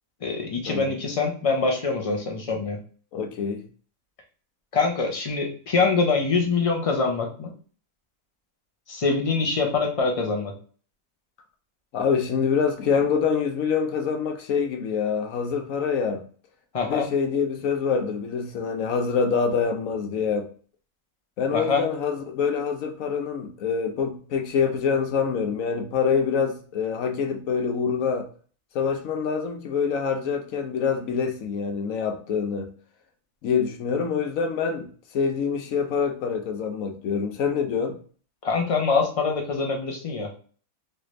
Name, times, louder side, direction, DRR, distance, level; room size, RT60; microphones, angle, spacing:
voice 1, 0.2-2.8 4.7-7.5 8.9-10.5 16.7-17.1 21.5-21.8 38.4-40.3, left 4 dB, 50° left, 0.4 m, -24 dB
voice 2, 3.1-3.6 11.9-16.2 16.8-20.5 21.4-28.3 28.7-32.7 33.4-34.9 35.1-38.0, left 6 dB, 70° left, 1.0 m, -25 dB
3.3 x 2.6 x 3.0 m
omnidirectional pair, 1.5 m